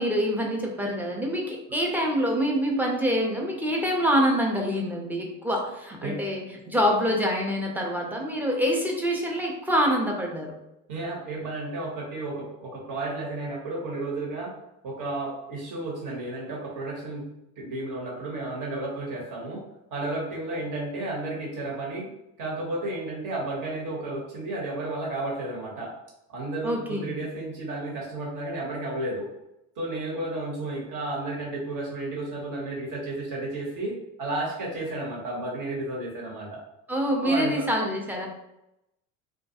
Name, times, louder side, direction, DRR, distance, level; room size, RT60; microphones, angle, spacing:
voice 1, 0.0-10.6 26.6-27.2 36.9-38.3, equal, 5° right, -1 dB, 0.4 m, -26 dB
voice 2, 10.9-14.5 14.8-17.2 17.6-19.6 19.9-22.1 22.4-25.9 26.3-29.3 29.8-36.6 37.2-37.7, right 2 dB, 50° right, -3 dB, 1.1 m, -32 dB
2.4 x 2.1 x 2.7 m, 0.88 s
supercardioid pair, 85°, 39 cm